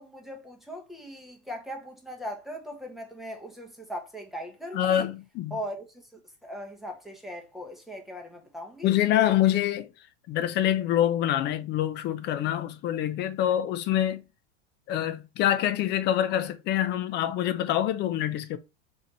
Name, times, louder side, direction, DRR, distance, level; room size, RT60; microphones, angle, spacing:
voice 1, 0.0-5.1 5.5-8.9, equal, ahead, 0.9 m, -39 dB
voice 2, 4.7-5.6 8.8-9.9 10.3-14.2 14.9-18.6, left 11 dB, 30° left, 0.4 m, -25 dB
4.1 x 2.7 x 2.9 m
supercardioid pair, 125°, 35 cm